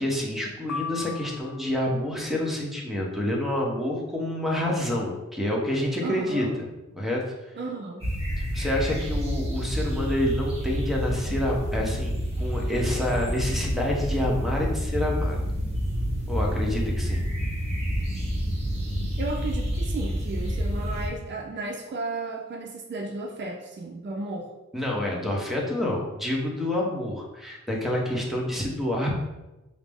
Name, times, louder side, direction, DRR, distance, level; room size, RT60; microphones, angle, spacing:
voice 1, 0.0-6.5 6.9-7.5 8.4-15.4 16.3-17.2 24.7-29.2, left 1 dB, ahead, -3 dB, 0.9 m, -28 dB
sound 1, 0.7-2.0, left 5 dB, 55° left, 0.5 m, -36 dB
voice 2, 6.0-6.6 7.6-8.0 19.2-24.5, right 3 dB, 40° right, 1 dB, 0.5 m, -34 dB
sound 2, 8.0-21.1, equal, 20° right, 1.3 m, -28 dB
4.8 x 2.1 x 3.4 m, 1.0 s
wide cardioid pair, 80°, 31 cm